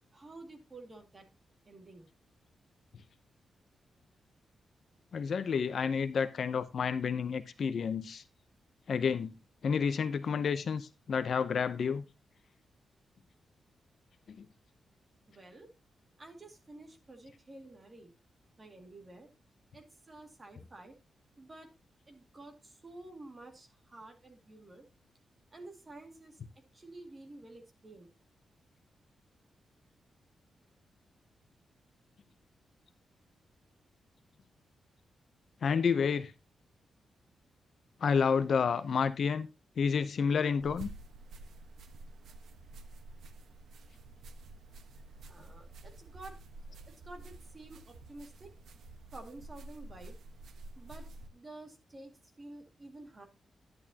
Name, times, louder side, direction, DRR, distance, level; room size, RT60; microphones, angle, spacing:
voice 1, 0.1-1.3 1.7-2.1 15.3-15.7 16.2-18.1 18.6-19.3 19.7-21.0 21.4-21.7 22.1-24.8 25.5-26.4 26.7-28.1 45.3-46.4 46.7-48.5 49.1-50.2 50.8-53.2, right 2 dB, 20° right, 2.2 m, -51 dB
voice 2, 5.1-8.2 8.9-9.3 9.6-12.0 14.4-14.5 35.6-36.3 38.0-39.5 39.8-40.9, left 6 dB, 50° left, 0.7 m, -30 dB
sound 1, 40.6-51.3, right 2 dB, 80° right, 1.2 m, -49 dB
11.0 x 10.5 x 2.8 m
wide cardioid pair, 170°, 0 cm